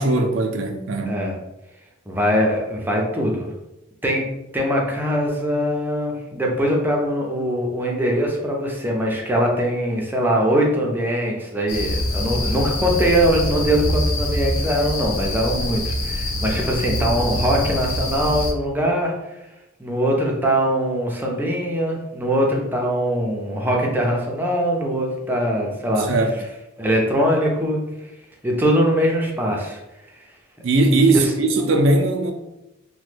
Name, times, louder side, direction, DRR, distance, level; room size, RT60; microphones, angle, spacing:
voice 1, 0.0-1.2 26.0-26.4 30.6-32.3, right 2 dB, 70° right, 4 dB, 0.5 m, -19 dB
voice 2, 1.0-1.4 2.1-3.5 4.0-4.2 4.5-19.1 19.8-26.1 26.8-27.8 28.4-29.8 31.1-31.3, equal, 10° right, -1 dB, 0.5 m, -22 dB
sound 1, 11.7-18.5, left 1 dB, 70° left, 0.5 m, -25 dB
3.0 x 2.2 x 3.2 m, 0.93 s
head